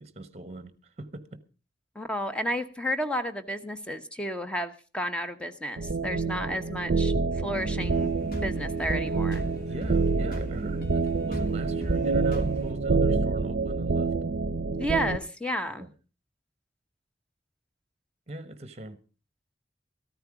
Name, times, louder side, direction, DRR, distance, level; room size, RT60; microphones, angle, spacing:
voice 1, 0.0-1.4 9.7-14.1 15.8-15.9 18.3-19.0, right 2 dB, 35° right, 1.1 m, -41 dB
voice 2, 1.9-8.1 8.4-9.4 14.8-15.9, equal, 5° left, 0.9 m, -32 dB
sound 1, 5.8-15.2, right 4 dB, 70° right, 0.6 m, -27 dB
sound 2, 7.5-12.7, right 1 dB, 55° left, 2.8 m, -39 dB
13.5 x 13.5 x 4.8 m
head